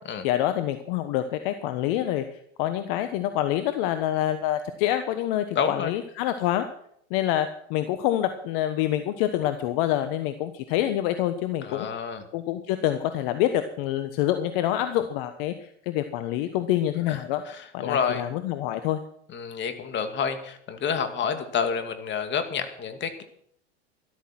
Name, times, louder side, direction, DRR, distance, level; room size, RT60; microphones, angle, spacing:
voice 1, 0.2-2.2 2.6-6.7 7.1-11.9 12.3-17.4 17.7-19.0, left 12 dB, 60° left, 10 dB, 1.3 m, -26 dB
voice 2, 5.5-5.9 11.6-12.2 17.1-17.2 17.5-18.2 19.3-23.2, left 6 dB, 35° left, 8 dB, 2.6 m, -29 dB
13.5 x 13.0 x 6.1 m, 0.66 s
hypercardioid pair, 105°, 33 cm